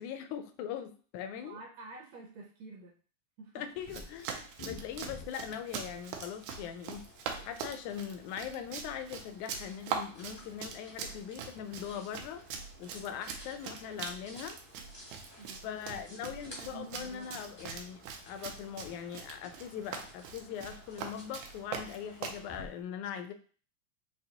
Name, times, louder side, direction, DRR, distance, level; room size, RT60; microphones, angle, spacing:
voice 1, 0.0-1.6 3.6-7.0 7.4-12.4 12.8-14.6 15.6-23.3, left 8 dB, 80° left, 8 dB, 1.9 m, -41 dB
voice 2, 1.4-2.9 3.4-3.7 15.4-17.6 18.0-18.2, right 3 dB, 70° right, 0 dB, 1.7 m, -50 dB
sound 1, 3.7-22.7, left 1 dB, 50° left, 0.4 m, -53 dB
Run, 3.8-22.4, right 6 dB, 85° right, 2.1 m, -42 dB
5.9 x 2.8 x 2.8 m, 0.40 s
omnidirectional pair, 3.4 m